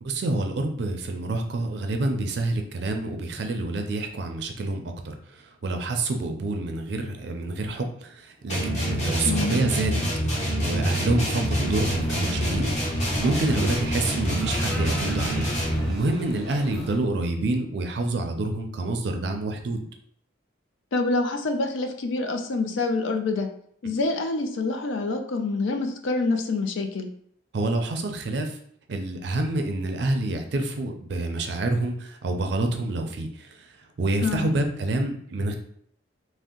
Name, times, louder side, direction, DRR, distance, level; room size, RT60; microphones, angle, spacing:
voice 1, 0.0-12.7 13.2-15.5 15.9-19.8 27.5-28.6 28.9-33.7 34.0-35.6, right 2 dB, 55° right, 4 dB, 0.4 m, -27 dB
sound 1, 8.5-16.0, equal, 35° left, 0.8 m, -26 dB
sound 2, 11.5-17.0, equal, ahead, 0.6 m, -39 dB
voice 2, 20.9-23.5 23.8-27.1 34.2-34.5, left 3 dB, 75° left, 5 dB, 0.4 m, -26 dB
2.6 x 2.1 x 3.6 m, 0.66 s
head